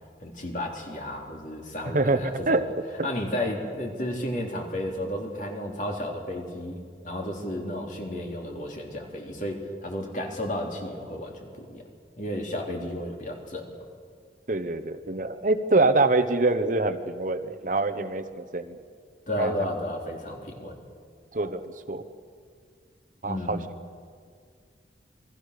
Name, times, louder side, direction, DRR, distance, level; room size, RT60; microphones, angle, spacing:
voice 1, 0.2-2.6 3.0-11.8 12.2-13.8 19.3-20.8 23.2-23.7, left 1 dB, 45° left, 1 dB, 3.4 m, -33 dB
voice 2, 1.9-2.6 3.0-3.1 14.5-18.8 19.4-19.5 21.3-21.6 21.9-22.0 23.2-23.6, right 2 dB, 45° right, 9 dB, 1.0 m, -25 dB
28.0 x 21.0 x 6.7 m, 2.1 s
head